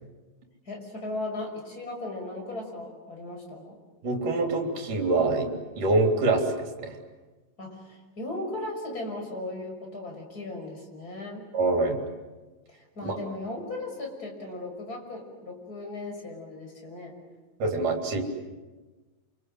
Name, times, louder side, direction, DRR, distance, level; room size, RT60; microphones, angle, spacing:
voice 1, 0.7-3.8 7.6-11.5 12.7-17.1, left 2 dB, 25° left, 1 dB, 6.5 m, -37 dB
voice 2, 4.0-7.0 11.5-12.0 13.0-13.2 17.6-18.2, right 2 dB, 60° right, 2 dB, 4.9 m, -25 dB
29.0 x 26.0 x 7.8 m, 1.2 s
omnidirectional pair, 4.0 m